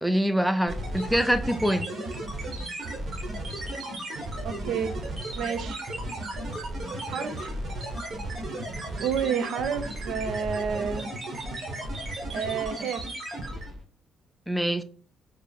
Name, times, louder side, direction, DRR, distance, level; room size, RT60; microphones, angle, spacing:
voice 1, 0.0-1.9 14.5-14.8, equal, ahead, 0.4 m, -24 dB
sound 1, 0.7-13.8, right 1 dB, 50° right, 1.1 m, -34 dB
voice 2, 4.4-4.9 5.4-5.8 7.1-7.6 9.0-11.1 12.3-13.0, right 7 dB, 75° right, 0.4 m, -30 dB
4.2 x 2.0 x 3.5 m
cardioid pair, 90°, 0 cm